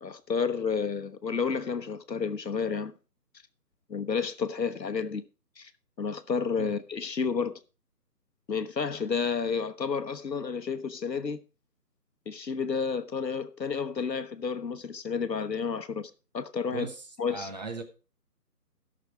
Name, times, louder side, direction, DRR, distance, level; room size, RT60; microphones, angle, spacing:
voice 1, 0.0-2.9 3.9-5.2 5.6-5.7 6.0-7.5 8.5-11.4 12.3-16.9 17.2-17.5, left 5 dB, 90° left, 1.3 m, -31 dB
voice 2, 16.7-17.8, right 4 dB, 25° right, 1.1 m, -38 dB
13.5 x 6.5 x 4.6 m
figure-of-eight pair, 160°, 49 cm